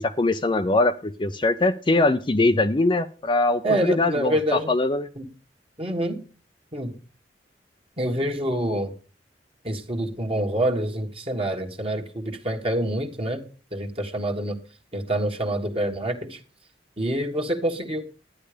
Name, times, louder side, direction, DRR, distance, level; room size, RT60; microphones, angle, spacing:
voice 1, 0.0-5.1, left 2 dB, 25° left, 7 dB, 0.5 m, -22 dB
voice 2, 3.6-4.7 5.2-5.3 5.8-6.2 6.7-7.0 8.0-8.9 9.6-13.4 13.7-14.6 14.9-16.4 17.0-18.1, right 1 dB, 30° right, 2 dB, 1.5 m, -26 dB
12.0 x 9.8 x 5.0 m, 0.36 s
head